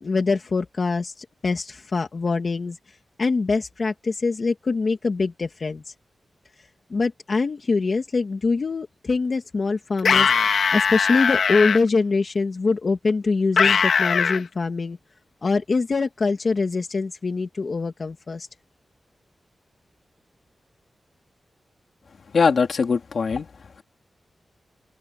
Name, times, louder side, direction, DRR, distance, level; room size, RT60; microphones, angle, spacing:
voice 1, 0.0-5.9 6.6-15.0 15.4-18.5, left 4 dB, 45° left, 2.0 m, -24 dB
sound 1, 10.0-11.8 13.6-14.4, left 6 dB, 80° left, 2.0 m, -20 dB
voice 2, 22.3-23.5, left 5 dB, 60° left, 3.0 m, -21 dB
open air
wide cardioid pair, 135°, 0 cm